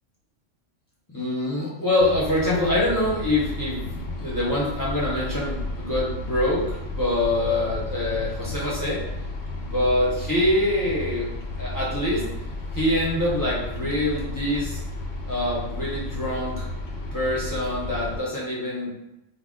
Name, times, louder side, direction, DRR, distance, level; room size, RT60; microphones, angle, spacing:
voice 1, 1.1-9.0 9.6-11.3 11.6-12.2 12.7-14.8 15.2-16.7 17.1-18.9, left 1 dB, 25° left, -7 dB, 0.5 m, -25 dB
sound 1, 2.0-18.2, left 2 dB, 85° left, 0.9 m, -33 dB
2.3 x 2.1 x 3.6 m, 0.89 s
omnidirectional pair, 1.2 m